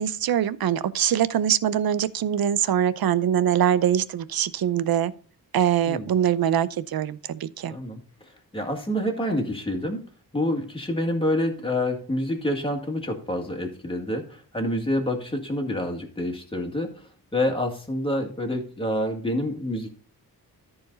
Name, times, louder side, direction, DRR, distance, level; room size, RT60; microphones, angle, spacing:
voice 1, 0.0-5.1 5.5-7.7, right 9 dB, 70° right, 0.6 m, -23 dB
voice 2, 7.7-8.0 8.5-10.0 10.3-16.9 17.3-19.9, left 1 dB, 15° left, 2.0 m, -27 dB
13.5 x 4.8 x 4.0 m
wide cardioid pair, 145°, 38 cm